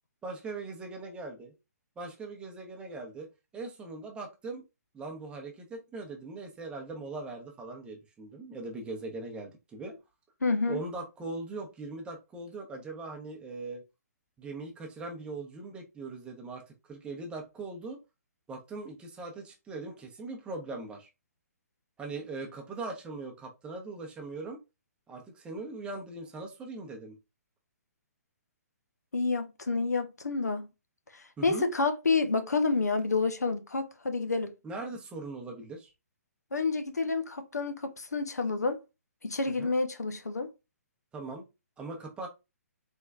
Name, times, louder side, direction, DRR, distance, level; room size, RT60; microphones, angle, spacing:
voice 1, 0.2-1.5 2.0-3.3 3.5-4.6 4.9-9.9 10.7-13.8 14.4-18.0 18.5-21.1 22.0-24.6 25.1-27.2 31.4-31.7 34.6-35.9 39.5-39.7 41.1-41.5 41.8-42.3, right 3 dB, 10° right, 0.8 m, -40 dB
voice 2, 10.4-10.8 29.1-30.7 31.1-34.5 36.5-38.8 39.2-40.5, left 3 dB, 80° left, 0.7 m, -29 dB
3.5 x 3.0 x 2.3 m
figure-of-eight pair, 130°, 9 cm